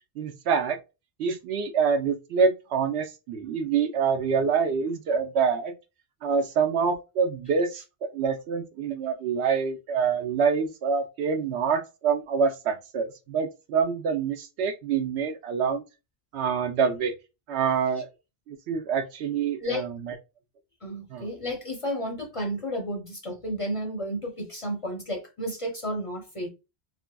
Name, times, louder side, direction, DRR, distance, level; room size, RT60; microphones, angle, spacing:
voice 1, 0.2-0.8 1.2-5.7 6.2-7.8 8.1-15.8 16.3-17.1 17.5-18.1 18.5-20.1 21.1-21.3, right 6 dB, 80° right, 0.9 m, -26 dB
voice 2, 20.8-26.5, equal, 40° left, 0.5 m, -32 dB
3.4 x 2.4 x 2.2 m
omnidirectional pair, 1.1 m